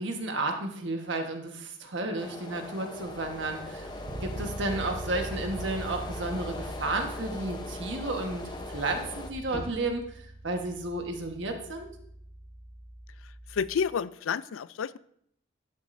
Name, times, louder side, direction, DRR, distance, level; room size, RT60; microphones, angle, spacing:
voice 1, 0.0-3.9 4.2-10.0 10.4-11.9, right 2 dB, 65° right, 4 dB, 1.4 m, -32 dB
sound 1, 2.2-9.3, left 2 dB, 20° left, 0.8 m, -41 dB
sound 2, 3.0-9.7, equal, 50° left, 1.4 m, -47 dB
Bass guitar, 4.0-13.9, right 1 dB, 40° right, 0.9 m, -42 dB
voice 2, 13.2-15.0, left 6 dB, 85° left, 17 dB, 0.4 m, -30 dB
12.0 x 9.2 x 2.7 m, 0.68 s
head